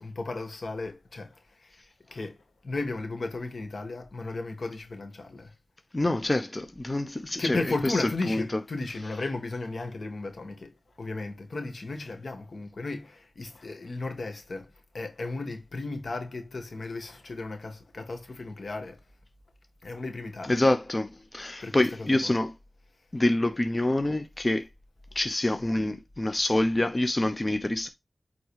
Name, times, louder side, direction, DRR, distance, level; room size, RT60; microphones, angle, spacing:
voice 1, 0.0-1.8 2.1-5.5 7.4-10.7 11.0-19.0 19.8-20.6 21.6-22.3, left 3 dB, 80° left, 1.7 m, -35 dB
voice 2, 5.9-8.6 20.4-22.5 23.1-24.6 25.1-27.9, left 1 dB, 35° left, 0.9 m, -26 dB
8.5 x 3.9 x 3.1 m
cardioid pair, 40°, 0 cm